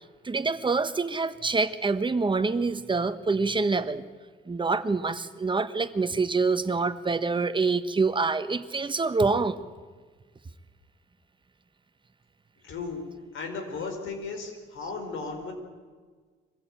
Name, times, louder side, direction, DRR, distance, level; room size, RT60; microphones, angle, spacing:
voice 1, 0.2-4.0 4.5-9.6, right 4 dB, 25° right, 12 dB, 1.2 m, -26 dB
voice 2, 12.6-13.0 13.3-15.5, left 4 dB, 80° left, 4 dB, 5.0 m, -35 dB
24.0 x 15.5 x 9.1 m, 1.5 s
cardioid pair, 90°, 20 cm